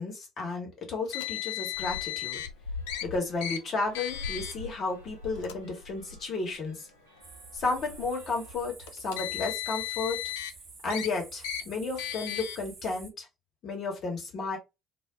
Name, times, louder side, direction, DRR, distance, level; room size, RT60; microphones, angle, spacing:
voice 1, 0.0-2.4 3.0-6.9 7.5-10.2 10.8-13.3 13.6-14.6, left 3 dB, 50° left, 1.1 m, -33 dB
Car, 1.1-2.5 2.9-3.0 3.4-3.6 4.0-4.5 5.4-5.5 6.5-6.6 8.9-10.5 10.9-11.1 11.4-11.6 12.0-12.6, left 12 dB, 70° left, 0.3 m, -35 dB
sound 1, 1.7-8.6, left 3 dB, 85° right, 0.5 m, -44 dB
sound 2, 7.2-13.1, right 4 dB, 40° right, 0.9 m, -49 dB
2.2 x 2.1 x 3.5 m
figure-of-eight pair, 50°, 0 cm